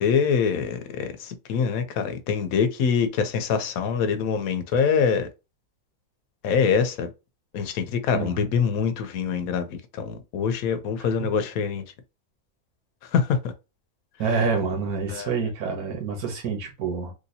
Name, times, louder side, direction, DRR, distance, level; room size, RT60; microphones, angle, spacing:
voice 1, 0.0-5.3 6.4-7.1 7.5-11.8 13.1-13.4 15.1-15.3, left 6 dB, 75° left, 1.1 m, -24 dB
voice 2, 8.1-8.5 11.0-11.1 14.2-17.1, right 5 dB, 80° right, 1.5 m, -27 dB
3.3 x 2.8 x 2.7 m
omnidirectional pair, 1.6 m